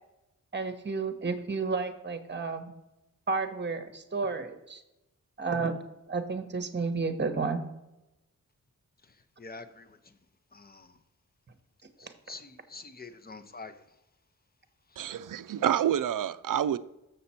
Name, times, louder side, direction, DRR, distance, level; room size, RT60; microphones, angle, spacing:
voice 1, 0.5-2.7 3.3-4.8 5.4-5.8 6.1-7.6 12.0-12.1, right 4 dB, 35° right, 0.9 m, -31 dB
voice 2, 9.4-9.9 10.5-10.9 12.0-13.7, left 3 dB, 30° left, 0.7 m, -46 dB
voice 3, 15.0-16.8, right 10 dB, 75° right, 0.5 m, -28 dB
6.8 x 6.7 x 4.2 m
wide cardioid pair, 100°, 33 cm